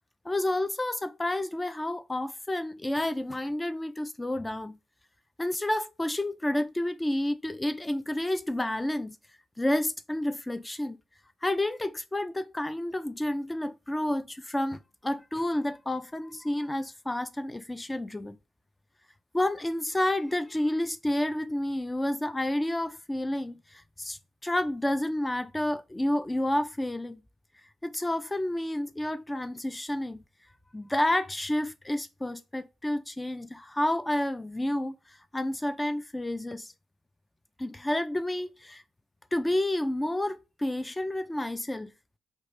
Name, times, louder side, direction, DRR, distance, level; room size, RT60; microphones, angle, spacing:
voice 1, 0.2-4.8 5.4-9.2 9.6-11.0 11.4-18.4 19.3-27.2 27.8-30.2 30.7-36.7 37.6-38.8 39.3-41.9, left 1 dB, 20° left, 0.3 m, -30 dB
3.0 x 2.2 x 3.0 m
supercardioid pair, 50°, 0 cm